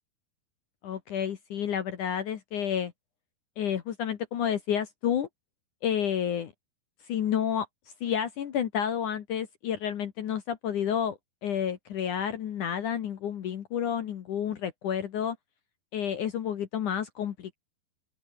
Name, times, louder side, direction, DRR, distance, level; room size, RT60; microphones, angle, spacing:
voice 1, 0.8-2.9 3.6-5.3 5.8-6.5 7.1-7.7 8.0-15.4 15.9-17.6, left 9 dB, 60° left, 2.7 m, -30 dB
open air
omnidirectional pair, 4.6 m